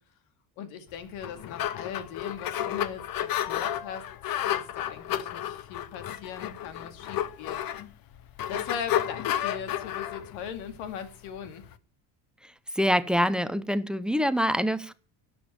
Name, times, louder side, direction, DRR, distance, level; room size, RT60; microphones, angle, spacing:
voice 1, 0.6-7.6 8.5-11.6, left 7 dB, 85° left, 2.3 m, -39 dB
sound 1, 1.0-11.7, left 11 dB, 50° left, 0.9 m, -32 dB
voice 2, 12.8-14.9, equal, ahead, 0.6 m, -25 dB
12.0 x 7.2 x 9.1 m
cardioid pair, 125°, 46 cm